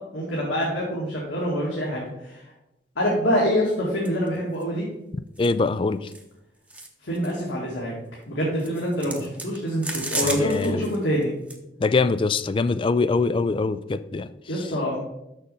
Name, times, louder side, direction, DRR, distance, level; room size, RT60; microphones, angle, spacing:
voice 1, 0.0-2.4 3.0-4.8 7.0-7.9 8.3-11.3 14.5-15.0, equal, 85° left, -5 dB, 2.1 m, -25 dB
sound 1, 4.0-4.3 4.6-4.7 5.4-5.5 6.1-6.2 6.7-6.9 7.1-7.3 8.6-11.0 11.2-11.6, right 2 dB, 10° right, 0.8 m, -33 dB
voice 2, 5.4-6.1 10.2-10.9 11.8-14.3, left 3 dB, 25° left, 14 dB, 0.3 m, -23 dB
6.5 x 6.5 x 5.5 m, 0.89 s
head